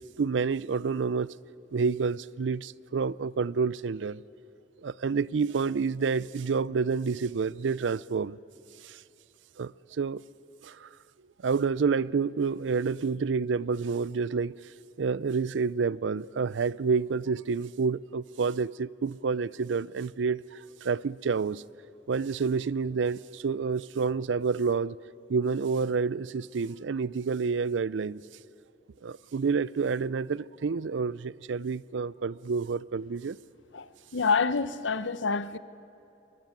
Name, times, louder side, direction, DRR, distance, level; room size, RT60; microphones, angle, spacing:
voice 1, 0.2-1.3 1.7-4.2 4.8-8.4 8.8-9.0 9.6-9.7 10.0-10.2 10.6-10.9 11.4-14.5 15.0-21.6 22.1-25.0 25.3-28.2 29.0-33.4, right 5 dB, 80° right, 0.5 m, -29 dB
voice 2, 33.7-35.6, left 5 dB, 85° left, 0.8 m, -27 dB
23.5 x 23.0 x 9.2 m
head